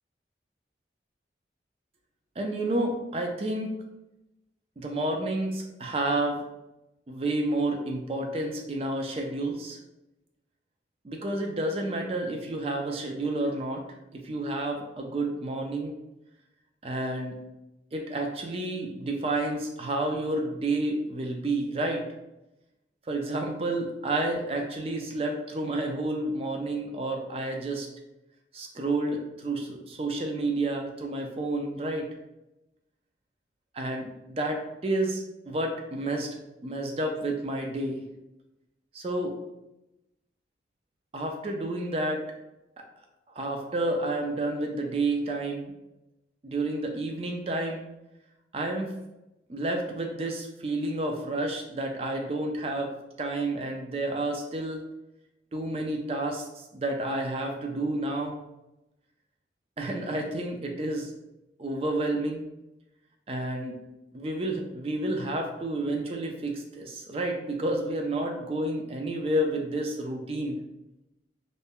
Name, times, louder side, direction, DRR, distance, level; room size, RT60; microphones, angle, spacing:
voice 1, 2.4-3.7 4.8-6.4 7.1-9.8 11.0-13.8 14.1-16.0 16.8-17.4 17.9-22.0 23.1-27.9 28.5-32.1 33.7-36.4 36.6-38.0 38.9-39.3 41.1-42.2 43.4-45.7 46.4-47.9 48.5-48.9 49.5-54.8 55.5-58.4 59.8-61.1 61.6-62.5 63.3-63.8 64.1-70.6, right 2 dB, 35° right, 2 dB, 0.4 m, -30 dB
2.6 x 2.1 x 3.5 m, 0.94 s
head